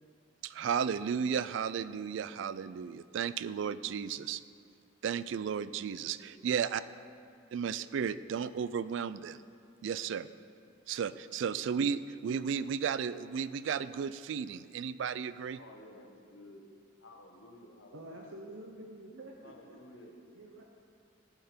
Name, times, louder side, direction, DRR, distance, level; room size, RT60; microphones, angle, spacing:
voice 1, 0.4-4.4 5.0-6.8 7.5-9.4 9.8-10.3 10.9-15.6, right 7 dB, 65° right, 15 dB, 0.3 m, -34 dB
voice 2, 5.7-6.4 15.5-16.6 17.0-18.4 19.4-20.2, left 1 dB, 80° left, 1 dB, 1.2 m, -54 dB
voice 3, 17.9-19.8 20.3-20.6, right 1 dB, 90° right, 1 dB, 0.8 m, -48 dB
14.5 x 5.7 x 4.3 m, 2.3 s
head